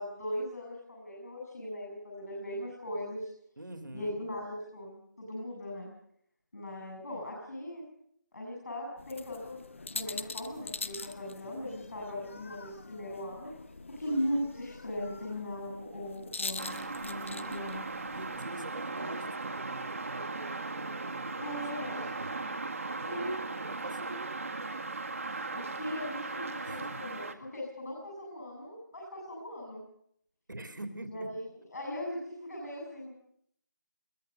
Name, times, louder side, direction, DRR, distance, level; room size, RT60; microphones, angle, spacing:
voice 1, 0.0-3.3 3.9-5.9 6.5-7.8 8.3-9.6 9.9-13.5 14.0-17.8 21.4-22.1 23.1-23.4 25.2-29.8 31.1-31.4 31.7-33.1, left 1 dB, 55° left, -1 dB, 7.5 m, -38 dB
voice 2, 3.6-4.2 18.1-22.4 23.0-24.4 26.4-27.0 30.5-31.3, right 1 dB, 75° right, 9 dB, 3.0 m, -45 dB
sound 1, 9.0-18.4, left 3 dB, 40° left, 0.8 m, -43 dB
sound 2, 16.6-27.3, right 3 dB, 45° right, 1.8 m, -38 dB
22.5 x 19.0 x 6.7 m, 0.69 s
figure-of-eight pair, 170°, 11 cm